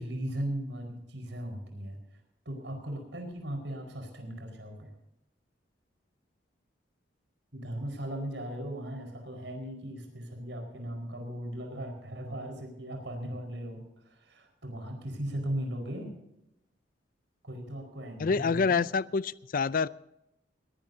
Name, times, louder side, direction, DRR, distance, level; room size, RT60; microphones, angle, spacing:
voice 1, 0.0-2.0 2.4-4.9 7.5-16.1 17.4-18.9, right 1 dB, 90° right, 4 dB, 4.8 m, -38 dB
voice 2, 18.2-19.9, left 5 dB, 50° left, 17 dB, 0.4 m, -27 dB
20.0 x 19.0 x 2.7 m, 0.85 s
head